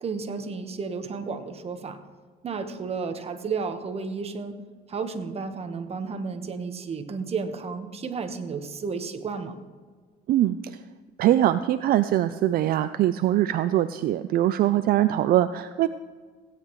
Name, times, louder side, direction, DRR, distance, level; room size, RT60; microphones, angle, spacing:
voice 1, 0.0-2.0 2.4-4.6 4.9-9.6, right 5 dB, 35° right, 8 dB, 1.2 m, -32 dB
voice 2, 10.3-10.8 11.2-15.9, right 13 dB, 60° right, 12 dB, 0.4 m, -22 dB
16.5 x 9.7 x 3.1 m, 1.5 s
cardioid pair, 110°, 17 cm